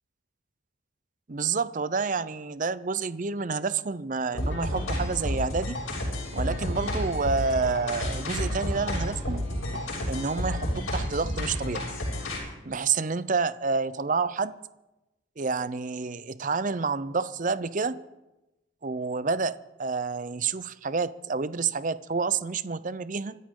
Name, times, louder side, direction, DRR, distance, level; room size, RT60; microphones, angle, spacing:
voice 1, 1.3-5.8 6.3-9.4 10.1-11.8 12.6-14.6 15.4-18.0 18.8-23.4, right 4 dB, 40° right, 14 dB, 0.6 m, -29 dB
Knock, 4.3-5.2 6.3-7.1 9.3-10.1, right 1 dB, 75° right, 2.6 m, -44 dB
sound 1, 4.4-12.4, left 1 dB, 85° left, 6.9 m, -31 dB
25.5 x 14.0 x 3.8 m, 1.0 s
head